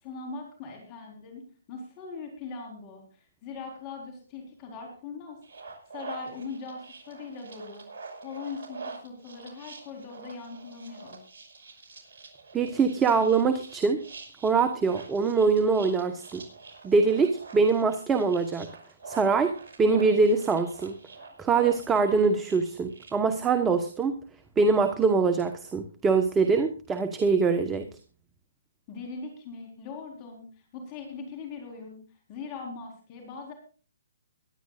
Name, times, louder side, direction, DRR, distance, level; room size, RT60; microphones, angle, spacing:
voice 1, 0.0-5.4 5.9-7.9 8.2-11.2 28.9-30.4 30.7-32.0 32.3-33.5, left 4 dB, 30° left, 2 dB, 4.2 m, -40 dB
sound 1, 5.4-23.1, right 4 dB, 55° right, 5.5 m, -46 dB
voice 2, 12.5-14.0 14.4-16.4 16.8-18.7 19.1-19.5 19.8-20.9 21.4-24.1 24.6-27.9, right 4 dB, 10° right, 7 dB, 1.2 m, -23 dB
22.5 x 11.0 x 2.5 m, 0.37 s
hypercardioid pair, 145°, 0 cm